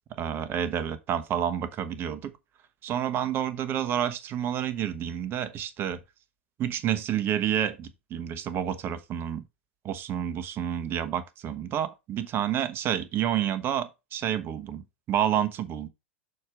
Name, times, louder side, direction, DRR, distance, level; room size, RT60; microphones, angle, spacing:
voice 1, 0.2-2.3 2.8-6.0 6.6-9.4 9.8-15.9, right 10 dB, 35° right, 1.0 m, -29 dB
6.5 x 4.5 x 4.7 m
figure-of-eight pair, 90°, 7 cm